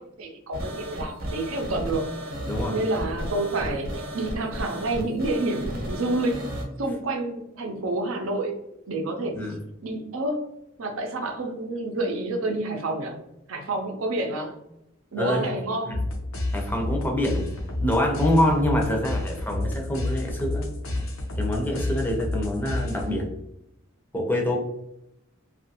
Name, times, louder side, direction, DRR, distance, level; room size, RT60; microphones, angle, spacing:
voice 1, 0.0-2.1 2.7-6.5 6.8-8.5 8.9-9.4 9.8-10.5 10.8-13.2 13.5-14.5 15.1-16.0, right 2 dB, 85° right, 3 dB, 0.6 m, -28 dB
sound 1, 0.5-6.6, equal, 45° right, 0.7 m, -33 dB
voice 2, 15.2-15.5 15.9-16.0 16.5-17.5 17.8-20.7 21.4-23.3 24.1-24.6, left 1 dB, 10° left, 0 dB, 0.5 m, -25 dB
sound 2, 15.9-23.3, left 1 dB, 80° left, 0.6 m, -30 dB
2.6 x 2.4 x 2.7 m, 0.83 s
head